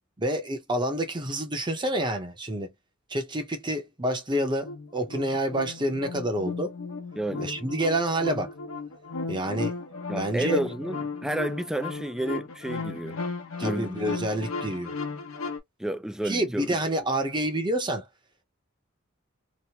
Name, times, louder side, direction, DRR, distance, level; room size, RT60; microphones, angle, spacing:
voice 1, 0.2-2.7 3.1-6.7 7.4-8.5 9.3-9.8 10.2-10.6 13.6-14.9 16.2-18.1, right 1 dB, 20° right, 0.7 m, -28 dB
sound 1, 4.3-15.6, left 4 dB, 80° left, 0.8 m, -35 dB
voice 2, 7.2-7.5 10.1-13.2 13.6-13.9 15.8-16.8, right 1 dB, 5° right, 0.3 m, -31 dB
3.0 x 2.1 x 2.8 m
head